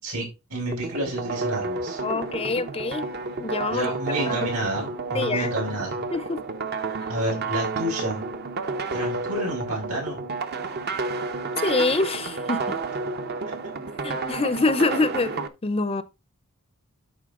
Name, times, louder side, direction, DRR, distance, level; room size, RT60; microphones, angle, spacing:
voice 1, 0.0-2.0 3.7-6.0 7.1-8.3 8.9-10.2 13.5-13.6, right 1 dB, 80° right, 6.1 m, -30 dB
sound 1, 0.7-15.5, right 3 dB, 45° right, 0.7 m, -30 dB
voice 2, 2.0-3.1 3.4-3.9 4.3-4.5 5.1-5.6 6.1-6.4 11.6-12.8 14.0-16.0, left 3 dB, 25° left, 0.5 m, -25 dB
12.5 x 4.2 x 3.7 m
head